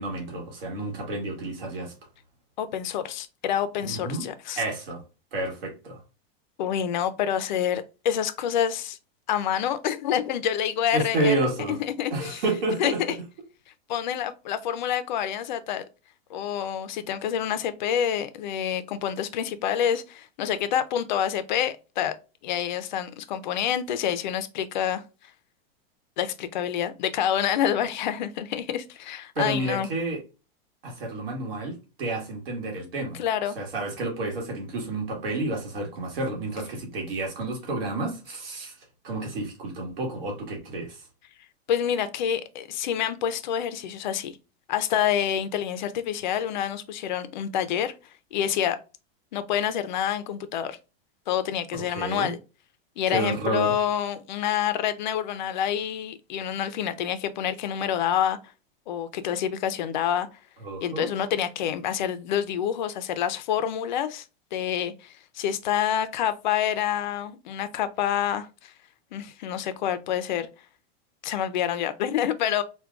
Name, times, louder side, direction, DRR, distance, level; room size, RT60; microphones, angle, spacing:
voice 1, 0.0-1.9 3.8-4.3 4.6-5.0 5.3-6.0 10.9-11.8 12.1-13.0 29.3-30.2 30.8-33.2 33.5-38.7 39.0-41.0 51.9-52.3 53.1-53.7 60.6-61.1, right 2 dB, 70° right, 1.5 m, -30 dB
voice 2, 2.6-4.6 6.6-9.0 9.3-11.4 11.7-12.4 12.8-13.1 13.9-15.8 16.3-22.1 22.4-25.0 26.2-29.9 33.2-33.6 41.7-44.4 44.7-47.9 48.3-48.8 49.3-50.8 51.3-52.4 53.0-58.4 58.9-60.3 60.8-64.2 64.5-68.7 69.1-70.5 71.2-72.6, left 9 dB, 50° left, 0.4 m, -27 dB
4.5 x 2.2 x 2.3 m
supercardioid pair, 175°, 30 cm